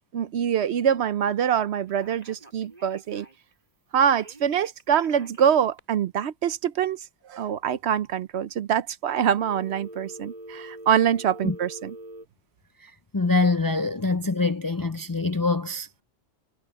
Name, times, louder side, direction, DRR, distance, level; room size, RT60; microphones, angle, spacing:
voice 1, 0.1-3.3 3.9-11.9, right 8 dB, 70° right, 0.9 m, -24 dB
Telephone, 1.9-3.5 4.2-5.8 9.4-12.3, right 1 dB, 35° right, 5.9 m, -44 dB
voice 2, 12.8-16.0, left 3 dB, 25° left, 0.4 m, -25 dB
omnidirectional pair, 1.2 m